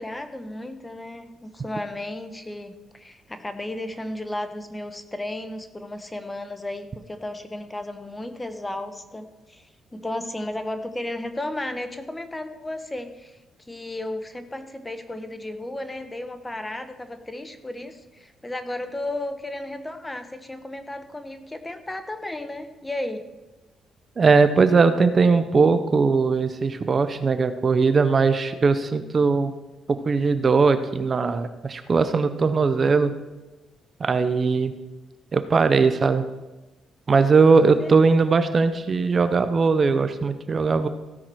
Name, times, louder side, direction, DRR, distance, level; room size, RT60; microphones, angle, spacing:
voice 1, 0.0-13.4 13.7-23.3 37.8-38.1, left 1 dB, 15° left, 9 dB, 1.0 m, -34 dB
voice 2, 24.2-29.5 29.9-33.1 34.0-34.7 35.3-36.2 37.1-40.9, right 4 dB, 40° right, 10 dB, 0.6 m, -19 dB
15.5 x 5.9 x 4.6 m, 1.1 s
cardioid pair, 90°, 0 cm